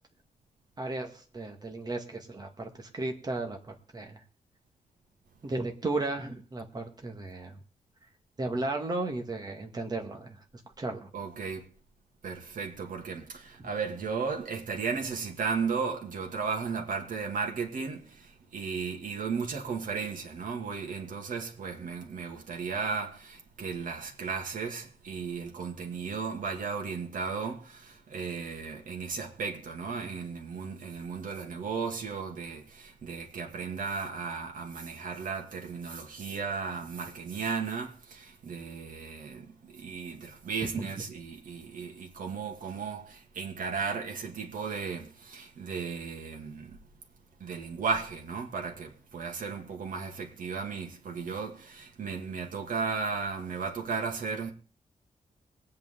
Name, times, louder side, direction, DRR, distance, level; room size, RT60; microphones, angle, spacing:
voice 1, 0.8-4.2 5.4-7.6 8.4-10.4 10.8-11.1 40.8-40.9, right 2 dB, 30° right, 2.0 m, -34 dB
voice 2, 11.1-11.7 12.2-46.8 47.4-54.5, right 5 dB, 70° right, 2.2 m, -35 dB
22.5 x 8.6 x 3.8 m
wide cardioid pair, 160°, 14 cm